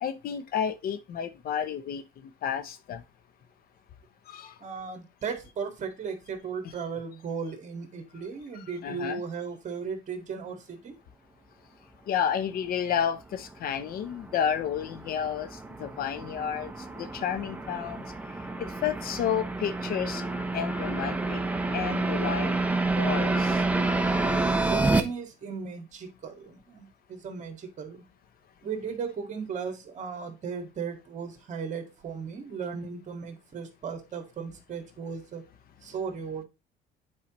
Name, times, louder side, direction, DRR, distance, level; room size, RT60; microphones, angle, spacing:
voice 1, 0.0-3.0 4.3-4.5 8.5-9.2 12.1-18.0 18.6-20.2 20.5-21.4 21.7-22.6 23.0-23.6, left 8 dB, 60° left, 0.7 m, -31 dB
voice 2, 4.6-10.9 24.7-28.0 28.6-35.5 35.8-36.4, right 6 dB, 45° right, 1.9 m, -36 dB
sound 1, 13.5-25.0, right 2 dB, 10° right, 0.8 m, -29 dB
8.7 x 4.8 x 3.0 m
cardioid pair, 110°, 17 cm